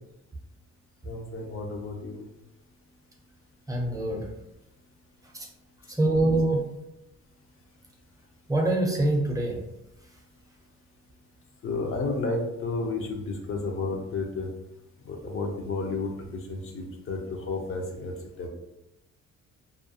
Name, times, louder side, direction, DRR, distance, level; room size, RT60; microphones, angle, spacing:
voice 1, 1.1-2.2 11.6-14.5 15.1-17.2 17.5-18.1 18.4-18.5, left 3 dB, 45° left, 2 dB, 0.6 m, -31 dB
voice 2, 3.7-4.2 5.3-5.4 6.0-6.6 8.5-9.6, right 2 dB, 10° right, 0 dB, 0.6 m, -24 dB
2.4 x 2.3 x 2.7 m, 0.90 s
cardioid pair, 90°, 30 cm